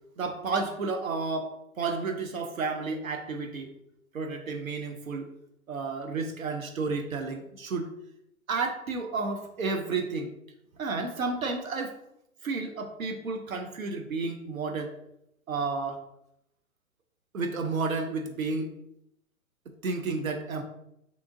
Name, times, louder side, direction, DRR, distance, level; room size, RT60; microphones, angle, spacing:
voice 1, 0.2-3.7 4.1-5.3 5.7-7.9 8.5-10.3 10.8-12.0 12.4-14.9 15.5-16.0 17.3-18.7 19.8-20.6, right 4 dB, 80° right, 4 dB, 0.6 m, -31 dB
3.5 x 2.8 x 2.5 m, 0.79 s
figure-of-eight pair, 110°, 41 cm